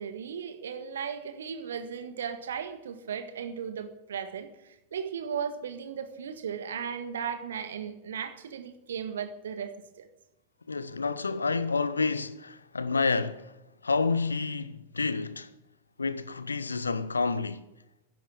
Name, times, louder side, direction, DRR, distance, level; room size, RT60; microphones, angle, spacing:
voice 1, 0.0-10.1, right 7 dB, 65° right, 1.7 m, -36 dB
voice 2, 10.7-15.5 16.0-17.7, left 4 dB, 75° left, 0.9 m, -29 dB
15.0 x 11.0 x 8.7 m
figure-of-eight pair, 90°, 0 cm